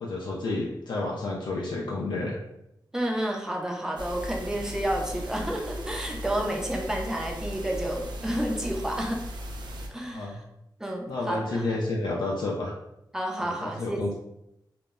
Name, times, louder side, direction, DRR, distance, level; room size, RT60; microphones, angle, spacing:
voice 1, 0.0-2.4 10.1-10.4 11.1-12.7 13.4-14.1, left 2 dB, 90° left, -3 dB, 0.4 m, -30 dB
voice 2, 2.9-9.2 9.9-10.4 10.8-11.8 13.1-14.0, right 1 dB, 5° right, 0 dB, 0.4 m, -30 dB
sound 1, 4.0-9.9, equal, 80° right, 0.4 m, -37 dB
2.0 x 2.0 x 3.4 m, 0.83 s
wide cardioid pair, 130°, 8 cm